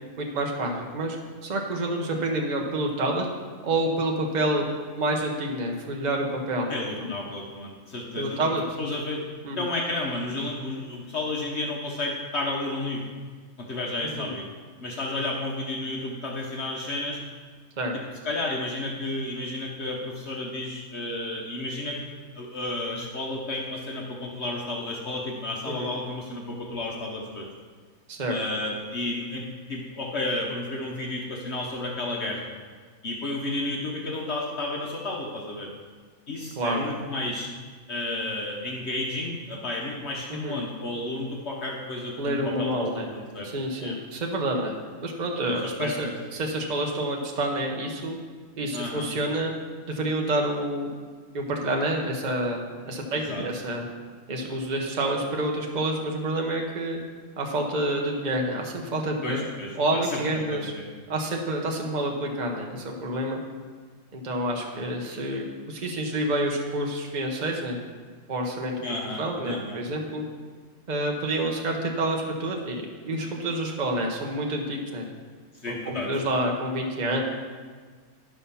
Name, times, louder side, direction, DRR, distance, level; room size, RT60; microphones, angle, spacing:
voice 1, 0.2-1.2 1.4-3.3 3.6-4.7 5.0-6.7 8.1-8.6 9.4-9.6 14.2-14.3 17.8-17.9 25.7-25.9 28.1-28.3 36.6-36.9 40.3-40.6 42.2-43.1 43.4-44.8 45.0-48.2 48.6-49.5 49.9-50.9 51.3-53.9 54.3-57.0 57.4-59.4 59.8-60.7 61.1-63.4 64.1-67.8 68.3-68.8 69.2-70.2 70.9-75.1 75.7-77.2, right 1 dB, 35° right, 1 dB, 1.1 m, -28 dB
voice 2, 6.7-8.4 8.8-9.2 9.6-13.0 13.6-14.4 14.8-17.2 17.9-22.0 22.3-27.5 28.3-32.5 33.0-35.7 36.3-37.5 37.9-43.5 43.8-44.0 45.4-46.1 48.7-49.1 53.3-53.4 59.2-60.9 68.8-69.8 75.5-76.1, left 2 dB, 55° left, -2 dB, 1.3 m, -32 dB
11.5 x 5.7 x 5.7 m, 1.5 s
omnidirectional pair, 1.4 m